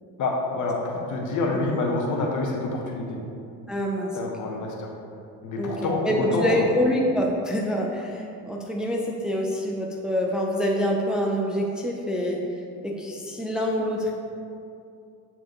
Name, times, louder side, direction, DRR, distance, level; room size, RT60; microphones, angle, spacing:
voice 1, 0.2-3.2 4.1-4.9 5.4-6.6, left 2 dB, 50° left, 0 dB, 1.2 m, -27 dB
voice 2, 3.7-4.2 5.6-12.4 12.8-14.1, equal, ahead, -1 dB, 0.6 m, -26 dB
7.1 x 4.8 x 3.1 m, 2.5 s
supercardioid pair, 95°, 38 cm